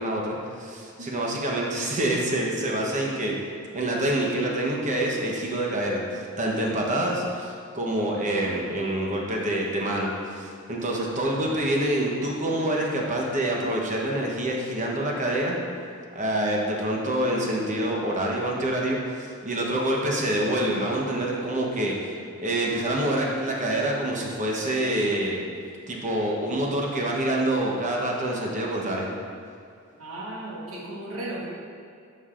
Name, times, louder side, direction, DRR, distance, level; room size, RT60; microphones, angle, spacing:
voice 1, 0.0-3.3 3.7-15.6 16.1-25.4 25.9-29.1, right 1 dB, 35° right, -2 dB, 1.0 m, -26 dB
voice 2, 30.0-31.5, right 1 dB, 75° right, -4 dB, 1.6 m, -35 dB
11.0 x 5.4 x 2.5 m, 2.3 s
head